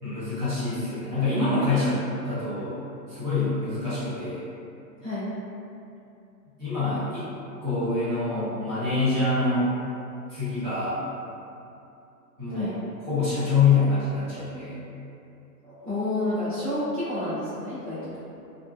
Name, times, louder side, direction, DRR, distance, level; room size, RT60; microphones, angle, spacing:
voice 1, 0.0-2.8 3.1-4.4 6.6-7.3 7.6-9.7 10.3-11.0 12.4-12.7 13.1-14.8, left 3 dB, 30° right, -13 dB, 0.9 m, -25 dB
voice 2, 15.7-18.1, left 1 dB, ahead, -28 dB, 0.6 m, -30 dB
2.5 x 2.1 x 2.3 m, 2.7 s
hypercardioid pair, 150°, 50 cm